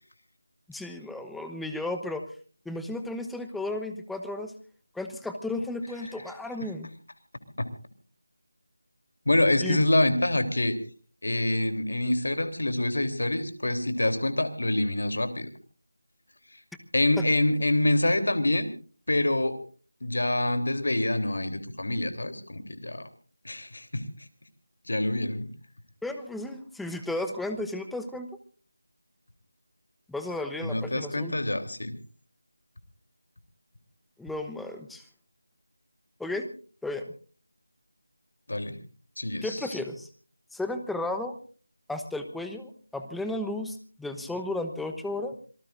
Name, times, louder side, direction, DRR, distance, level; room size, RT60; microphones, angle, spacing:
voice 1, 0.7-2.2 2.6-4.5 4.9-6.9 9.6-9.8 17.2-17.3 26.0-28.3 30.1-31.3 34.2-35.0 36.2-36.5 36.8-37.0 39.4-40.1 40.5-41.3 41.9-45.4, left 2 dB, ahead, 7 dB, 1.1 m, -34 dB
voice 2, 9.3-10.8 11.2-15.5 16.9-18.7 19.1-19.5 20.0-23.1 23.5-24.1 24.9-25.5 30.6-31.9 38.5-38.8 39.2-39.6, left 1 dB, 65° left, 8 dB, 3.4 m, -26 dB
26.5 x 19.5 x 2.6 m, 0.40 s
figure-of-eight pair, 165°, 0 cm